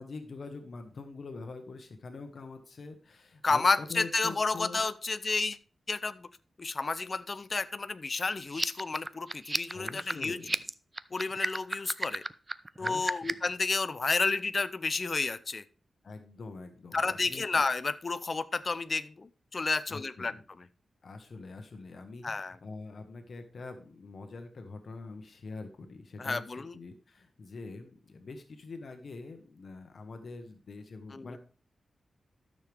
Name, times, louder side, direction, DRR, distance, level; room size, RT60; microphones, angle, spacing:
voice 1, 0.0-4.8 9.7-10.5 12.8-13.4 16.0-17.6 19.9-20.4 21.0-31.4, left 3 dB, 55° left, 6 dB, 1.2 m, -44 dB
voice 2, 3.4-5.6 5.9-6.3 6.6-10.4 11.1-12.2 12.8-15.6 16.9-20.7 22.2-22.6 26.2-26.8 31.1-31.4, left 3 dB, 40° left, 13 dB, 0.5 m, -31 dB
sound 1, 8.5-13.5, right 2 dB, 20° right, 0.4 m, -33 dB
12.5 x 6.6 x 3.4 m, 0.39 s
wide cardioid pair, 110°, 0 cm